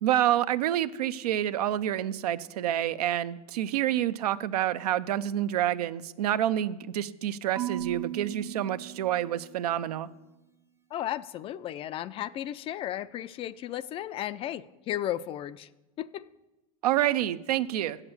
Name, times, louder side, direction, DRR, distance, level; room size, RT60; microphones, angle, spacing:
voice 1, 0.0-10.1 16.8-18.0, right 12 dB, 85° right, 13 dB, 0.5 m, -28 dB
Marimba xylophone / Wood, 7.6-9.8, right 12 dB, 15° right, 0.6 m, -37 dB
voice 2, 10.9-15.7 16.0-16.2, left 12 dB, 30° left, 16 dB, 0.3 m, -34 dB
7.7 x 7.3 x 8.0 m, 1.0 s
supercardioid pair, 120°, 20 cm